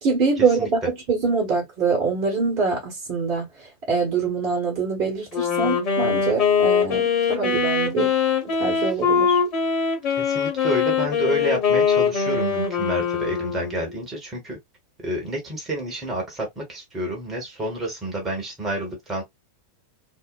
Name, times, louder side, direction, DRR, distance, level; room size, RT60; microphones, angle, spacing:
voice 1, 0.0-8.1 8.6-9.4, right 4 dB, 40° right, 1.2 m, -24 dB
Wind instrument woodwind instrument, 5.3-14.0, left 6 dB, 40° left, 1.1 m, -22 dB
voice 2, 10.2-14.6 15.0-19.2, right 1 dB, 20° right, 1.1 m, -29 dB
2.7 x 2.1 x 2.2 m
figure-of-eight pair, 90°, 0 cm